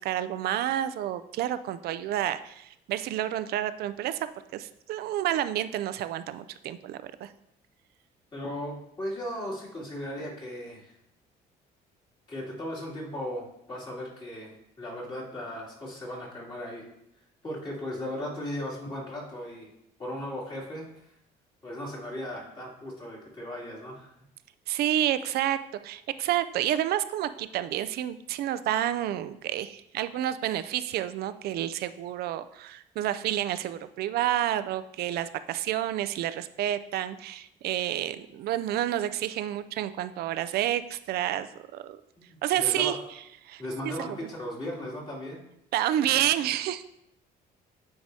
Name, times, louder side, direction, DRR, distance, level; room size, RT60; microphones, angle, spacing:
voice 1, 0.0-4.3 4.5-7.3 24.7-25.6 25.8-41.5 41.7-42.0 42.4-43.0 43.4-44.3 45.7-46.8, right 12 dB, 70° right, 13 dB, 0.4 m, -29 dB
voice 2, 8.3-10.9 12.3-16.8 17.4-19.7 20.0-20.8 21.6-24.1 42.2-42.9 43.6-45.4, left 1 dB, 30° left, -6 dB, 2.7 m, -37 dB
9.5 x 4.7 x 2.8 m, 0.79 s
cardioid pair, 110°, 17 cm